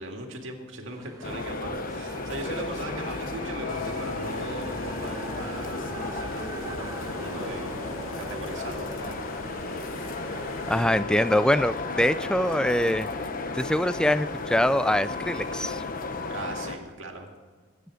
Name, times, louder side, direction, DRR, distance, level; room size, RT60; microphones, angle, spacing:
voice 1, 0.0-7.8 8.2-9.2 16.3-17.3, right 2 dB, 65° right, 2 dB, 2.1 m, -39 dB
sound 1, 0.9-15.7, right 2 dB, 15° right, 1.0 m, -43 dB
sound 2, 1.2-16.8, left 3 dB, 45° left, 0.9 m, -34 dB
Stream, 3.7-10.9, left 4 dB, 70° left, 0.8 m, -43 dB
voice 2, 10.7-13.1 13.5-15.8, left 1 dB, 5° left, 15 dB, 0.3 m, -24 dB
22.0 x 9.3 x 5.0 m, 1.5 s
head